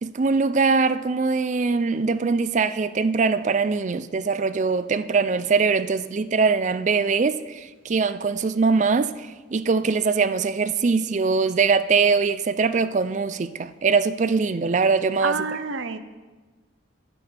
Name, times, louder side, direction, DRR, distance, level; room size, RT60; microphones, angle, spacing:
voice 1, 0.0-9.1 9.5-15.5, right 4 dB, 35° right, 0.3 m, -22 dB
voice 2, 15.2-16.0, right 4 dB, 75° right, 0.7 m, -28 dB
9.8 x 9.1 x 4.4 m
head